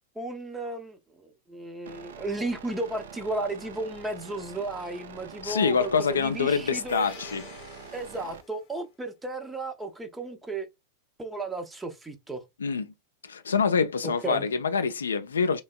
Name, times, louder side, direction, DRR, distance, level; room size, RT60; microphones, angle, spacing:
voice 1, 0.2-7.1 7.9-10.7 11.2-12.4 14.0-14.5, right 2 dB, 10° right, 0.5 m, -34 dB
sound 1, 1.9-8.4, right 7 dB, 60° right, 0.4 m, -45 dB
voice 2, 5.4-7.5 12.6-12.9 13.2-15.6, left 5 dB, 70° left, 0.3 m, -26 dB
sound 2, 6.9-8.8, left 6 dB, 45° left, 0.7 m, -48 dB
3.3 x 2.2 x 2.3 m
figure-of-eight pair, 90°, 0 cm